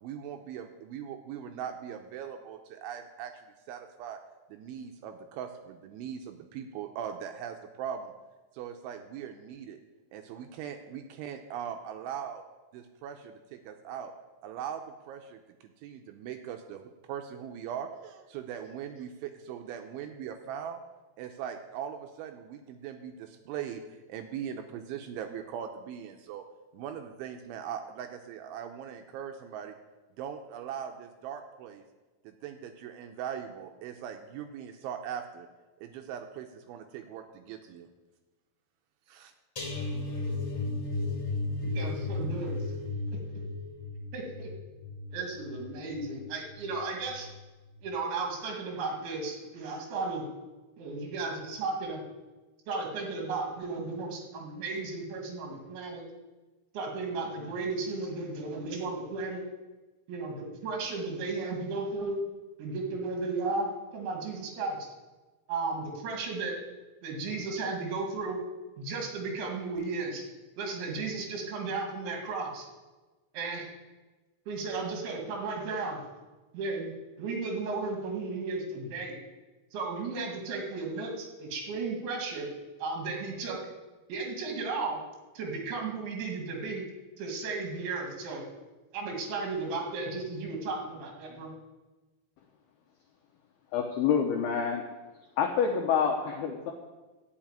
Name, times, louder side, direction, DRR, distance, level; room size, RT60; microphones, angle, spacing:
voice 1, 0.0-3.3 3.7-4.2 4.5-8.1 8.6-9.8 10.1-12.4 12.7-14.1 14.4-15.4 15.8-16.8 17.1-20.8 21.2-23.8 24.1-26.4 26.7-29.7 30.2-31.8 32.3-35.5 35.8-37.9 39.1-39.3, right 8 dB, 85° right, 5 dB, 2.8 m, -40 dB
sound 1, 39.6-46.6 47.0-47.3 47.6-47.7, left 2 dB, 35° left, 1.9 m, -35 dB
voice 2, 41.6-42.7 44.1-44.5 45.1-47.3 47.8-50.2 50.8-52.0 52.7-56.0 56.7-59.4 60.1-62.2 62.6-64.8 65.5-66.6 67.0-68.4 68.8-70.2 70.6-72.7 73.3-73.7 74.5-76.0 76.5-76.9 77.2-79.2 79.7-82.5 82.8-83.6 84.1-85.0 85.4-86.8 87.2-88.4 88.9-91.5, right 3 dB, 70° right, 1 dB, 4.1 m, -34 dB
voice 3, 93.7-94.8 95.4-96.7, left 7 dB, 90° left, 2 dB, 2.2 m, -27 dB
12.0 x 5.9 x 8.8 m, 1.2 s
omnidirectional pair, 5.8 m